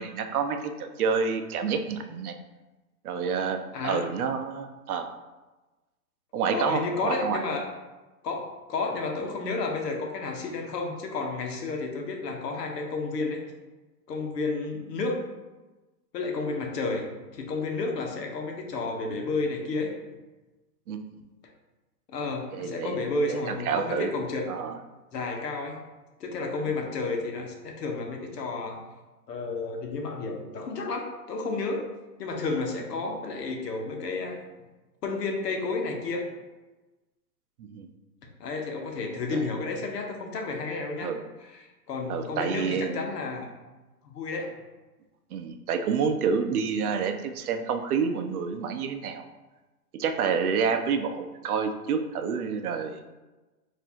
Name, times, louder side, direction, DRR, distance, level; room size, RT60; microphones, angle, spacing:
voice 1, 0.0-2.3 3.0-5.1 6.3-7.4 20.9-21.0 22.5-23.0 23.3-24.1 24.5-24.8 37.6-37.9 39.3-39.5 41.0-41.2 42.1-43.0 45.3-49.3 49.9-53.0, right 6 dB, 65° right, 7 dB, 0.5 m, -28 dB
voice 2, 3.7-4.0 6.5-7.7 8.2-13.4 14.1-15.2 16.1-17.1 17.3-19.9 22.1-24.4 25.1-25.8 26.2-28.8 29.3-31.8 32.2-34.4 35.0-36.2 38.4-41.1 41.4-43.5 44.0-44.5, left 3 dB, 85° left, 1 dB, 0.9 m, -31 dB
4.2 x 2.6 x 2.8 m, 1.1 s
hypercardioid pair, 160°, 48 cm